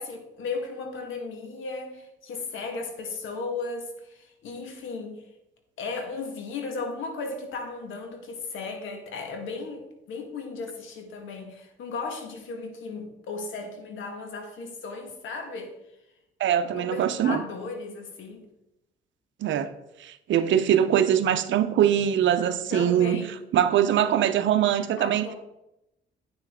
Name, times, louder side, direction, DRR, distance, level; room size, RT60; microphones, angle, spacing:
voice 1, 0.0-5.2 5.8-15.7 16.7-18.5 22.7-23.5 25.0-25.3, left 4 dB, 80° left, 1.5 m, -36 dB
voice 2, 16.4-17.4 19.4-19.7 20.0-23.2 23.5-25.2, right 10 dB, 70° right, 0.7 m, -22 dB
8.8 x 6.5 x 3.6 m
cardioid pair, 90°, 20 cm